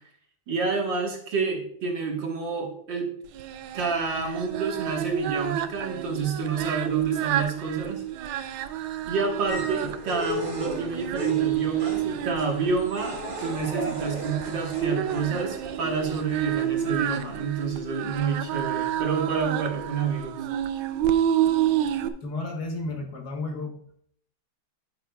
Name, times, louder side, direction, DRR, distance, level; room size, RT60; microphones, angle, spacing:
voice 1, 0.5-3.1 3.7-8.0 9.1-20.5, right 5 dB, 60° right, 0 dB, 2.1 m, -29 dB
Singing, 3.3-22.1, right 11 dB, 80° right, 1.4 m, -29 dB
sound 1, 9.5-17.3, equal, 45° right, 2.6 m, -37 dB
voice 2, 22.2-23.7, left 2 dB, 55° left, 2 dB, 1.6 m, -32 dB
10.0 x 9.7 x 2.3 m, 0.63 s
omnidirectional pair, 2.3 m